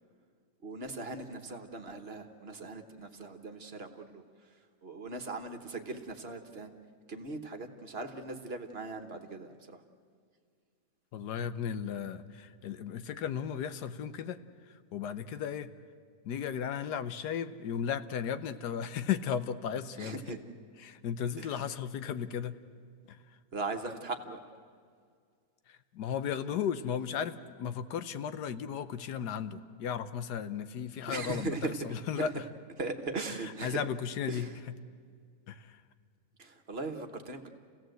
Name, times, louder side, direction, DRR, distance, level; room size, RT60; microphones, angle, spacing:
voice 1, 0.6-4.2 4.8-6.7 7.1-9.8 20.0-20.4 21.4-21.6 23.5-24.4 31.1-31.8 32.2-32.3 32.8-33.8 34.3-34.6 36.4-37.5, right 3 dB, 40° right, 6 dB, 1.4 m, -39 dB
voice 2, 11.1-14.4 14.7-15.7 16.2-20.2 20.8-22.6 23.1-23.2 25.7-32.3 33.4-34.5 35.5-35.8, left 8 dB, 85° left, 12 dB, 1.4 m, -35 dB
28.5 x 16.5 x 7.9 m, 2.1 s
omnidirectional pair, 1.7 m